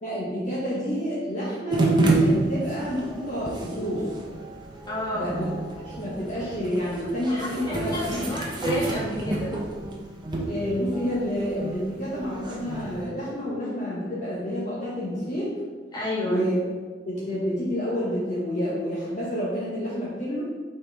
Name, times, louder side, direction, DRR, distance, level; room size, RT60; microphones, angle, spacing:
voice 1, 0.0-4.1 5.1-5.5 5.8-8.3 10.5-15.5 16.2-16.6 17.1-20.4, equal, 45° left, -7 dB, 1.3 m, -29 dB
sound 1, 1.7-13.0, right 2 dB, 25° right, 0.9 m, -29 dB
voice 2, 4.9-5.3 7.3-9.5 15.9-16.4, left 1 dB, 25° left, -7 dB, 1.7 m, -30 dB
6.5 x 4.4 x 3.5 m, 1.4 s
head